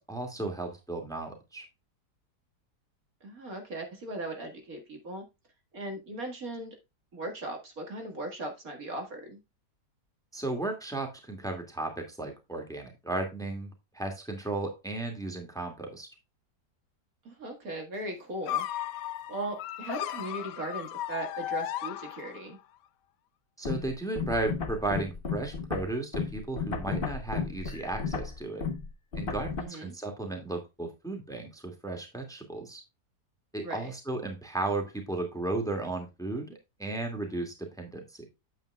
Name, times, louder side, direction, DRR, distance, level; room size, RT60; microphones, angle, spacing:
voice 1, 0.1-1.6 10.3-13.7 13.9-16.1 23.6-28.7 29.1-32.8 33.5-38.2, right 2 dB, ahead, 3 dB, 2.0 m, -34 dB
voice 2, 3.2-5.2 5.7-6.8 7.1-9.4 17.2-18.7 19.3-22.6 29.6-29.9 33.6-33.9, right 2 dB, 55° right, 3 dB, 2.3 m, -38 dB
sound 1, 18.5-22.6, left 12 dB, 90° left, 1.3 m, -35 dB
sound 2, 23.7-29.6, left 5 dB, 35° left, 1.2 m, -34 dB
9.0 x 8.7 x 2.3 m, 0.24 s
omnidirectional pair, 1.8 m